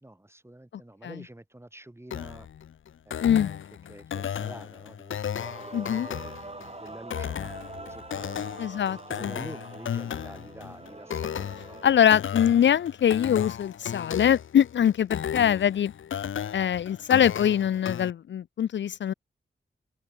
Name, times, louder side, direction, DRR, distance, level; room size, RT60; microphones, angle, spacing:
voice 1, 0.0-2.5 3.1-3.6 3.9-8.4 8.9-11.8, right 1 dB, 10° right, 2.0 m, -47 dB
sound 1, 2.1-18.1, left 9 dB, 85° left, 1.2 m, -35 dB
Male singing / Female singing / Musical instrument, 5.4-12.0, right 2 dB, 30° right, 6.1 m, -44 dB
voice 2, 5.7-6.1 8.6-9.3 11.8-15.9 16.5-19.1, left 9 dB, 65° left, 0.5 m, -23 dB
open air
cardioid pair, 55°, 20 cm